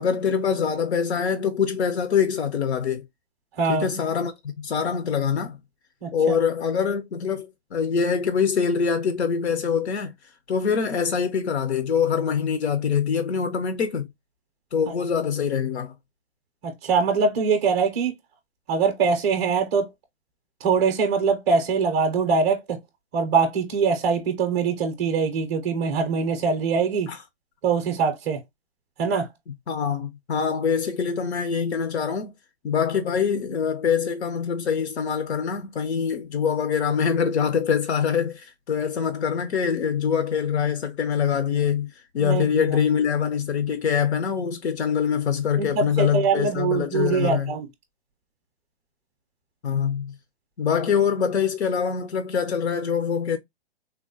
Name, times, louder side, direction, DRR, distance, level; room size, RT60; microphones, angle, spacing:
voice 1, 0.0-3.0 3.7-5.6 6.1-10.1 10.5-14.1 14.7-15.9 27.1-27.2 29.7-32.3 32.6-47.5 49.6-50.1 50.6-53.4, left 7 dB, 80° left, 0.7 m, -24 dB
voice 2, 16.6-18.1 18.7-19.9 20.6-22.8 23.1-27.1 27.6-28.4 29.0-29.3 42.2-42.8 45.6-47.7, right 5 dB, 20° right, 0.4 m, -23 dB
3.5 x 2.0 x 2.6 m
hypercardioid pair, 145°, 32 cm